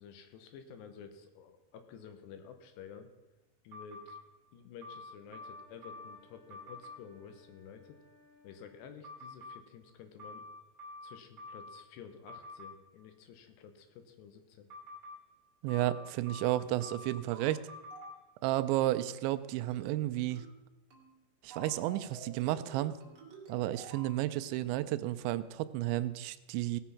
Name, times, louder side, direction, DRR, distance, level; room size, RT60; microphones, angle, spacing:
voice 1, 0.0-3.1 3.6-4.2 4.5-8.0 8.4-10.5 11.0-14.7, left 7 dB, 80° left, 8 dB, 2.9 m, -51 dB
sound 1, 3.7-4.2 4.8-6.2 6.5-7.0 9.0-9.6 10.2-11.8 12.3-12.7 14.7-15.2 15.7-17.2 17.7-18.1, left 2 dB, 30° right, 2.5 m, -47 dB
sound 2, 5.1-9.0, left 2 dB, 15° left, 1.0 m, -64 dB
voice 2, 15.6-17.6 18.4-20.5 21.4-22.9 23.5-26.8, right 15 dB, 85° right, 12 dB, 2.8 m, -32 dB
sound 3, 17.3-17.6 17.9-18.2 18.5-18.8 19.1-19.4 19.7-20.0 20.3-20.6 20.9-21.1 21.5-24.2, right 3 dB, 45° right, 2.3 m, -50 dB
17.5 x 6.1 x 5.7 m, 1.0 s
omnidirectional pair, 5.2 m